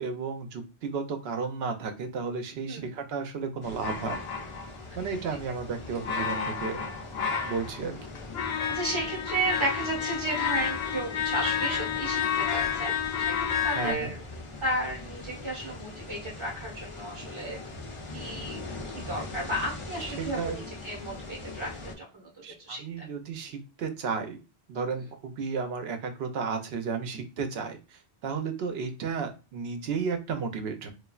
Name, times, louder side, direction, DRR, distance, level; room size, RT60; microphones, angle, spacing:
voice 1, 0.0-4.2 5.0-6.9 7.4-8.0 13.7-14.1 20.0-20.6 22.4-24.4 24.7-30.9, right 5 dB, 80° right, 6 dB, 0.8 m, -33 dB
sound 1, 3.6-21.9, left 2 dB, 40° left, 0.5 m, -41 dB
sound 2, 3.8-5.1 6.0-7.8 8.1-13.9, left 8 dB, 75° left, 0.8 m, -30 dB
voice 2, 8.7-14.2 14.6-17.6 18.1-18.6 18.9-22.3 22.7-23.0, right 1 dB, 30° right, -3 dB, 1.2 m, -33 dB
3.2 x 2.3 x 2.3 m, 0.30 s
omnidirectional pair, 1.0 m